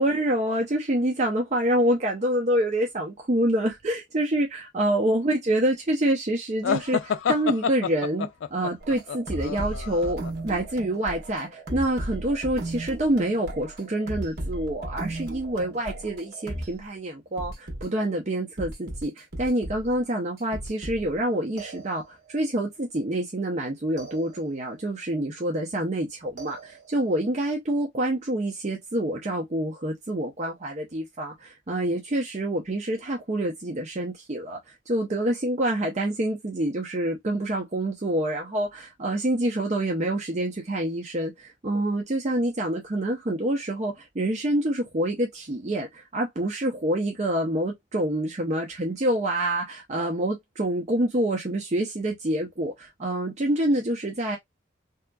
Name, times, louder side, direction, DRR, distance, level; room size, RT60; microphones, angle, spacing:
voice 1, 0.0-54.4, right 1 dB, 35° right, 0.6 m, -27 dB
sound 1, 6.6-10.3, left 7 dB, 85° left, 0.4 m, -28 dB
sound 2, 8.8-16.8 17.4-17.8 18.6-20.0 20.4-21.2 21.6-22.4 24.0-24.8 26.4-27.2, right 1 dB, 55° right, 1.1 m, -36 dB
3.5 x 2.8 x 2.2 m
head